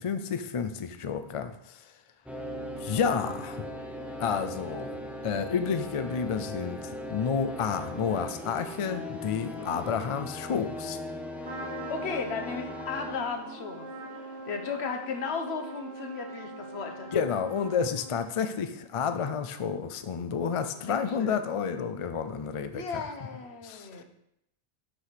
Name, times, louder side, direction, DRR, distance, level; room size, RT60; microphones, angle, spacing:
voice 1, 0.0-1.9 2.8-3.7 4.2-5.0 5.2-11.0 17.1-23.0 23.6-24.0, left 6 dB, 45° left, 9 dB, 0.4 m, -30 dB
sound 1, 2.3-20.5, left 1 dB, ahead, 0.7 m, -40 dB
Trumpet, 11.4-18.3, right 2 dB, 55° right, 2.1 m, -43 dB
voice 2, 11.9-17.1 20.7-21.4 22.7-24.0, left 5 dB, 75° left, 4 dB, 1.2 m, -36 dB
6.1 x 4.8 x 5.8 m, 0.78 s
omnidirectional pair, 1.1 m